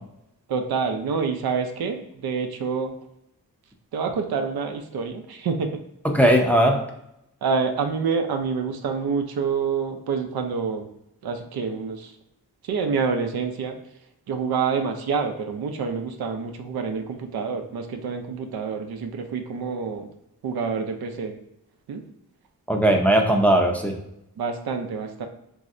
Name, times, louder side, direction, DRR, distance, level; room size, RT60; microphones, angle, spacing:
voice 1, 0.5-2.9 3.9-5.8 7.4-10.9 11.2-12.1 12.7-13.8 14.3-20.1 20.4-21.3 21.9-22.0 24.4-25.3, right 5 dB, 90° right, 6 dB, 0.5 m, -27 dB
voice 2, 6.0-6.8 22.7-23.9, right 1 dB, 5° left, 1 dB, 0.4 m, -18 dB
3.1 x 2.7 x 2.5 m, 0.81 s
cardioid pair, 65°, 36 cm